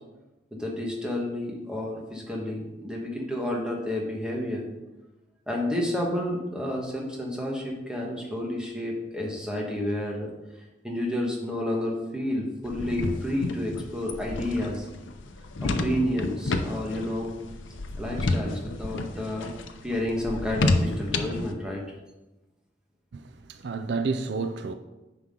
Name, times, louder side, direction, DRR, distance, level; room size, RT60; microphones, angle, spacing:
voice 1, 0.5-4.6 5.5-10.3 10.8-14.9 15.6-17.3 18.0-19.5 19.8-21.8, left 1 dB, 5° right, 1.4 m, -30 dB
sound 1, 12.6-21.5, left 2 dB, 80° left, 0.7 m, -30 dB
voice 2, 23.1-24.7, right 4 dB, 60° right, 0.4 m, -30 dB
9.6 x 5.9 x 3.8 m
head